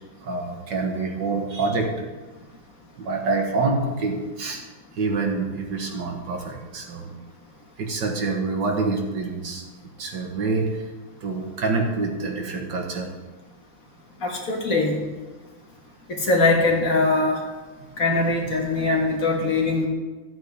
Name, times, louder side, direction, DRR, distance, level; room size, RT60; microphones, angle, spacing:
voice 1, 0.2-2.1 3.0-4.6 5.0-7.1 7.8-9.6 10.0-10.8 11.2-13.1, right 3 dB, 65° right, 2 dB, 1.9 m, -26 dB
voice 2, 14.2-15.0 16.1-17.4 18.0-19.9, left 3 dB, 45° left, 0 dB, 1.8 m, -21 dB
14.5 x 8.2 x 3.5 m, 1.2 s
omnidirectional pair, 2.1 m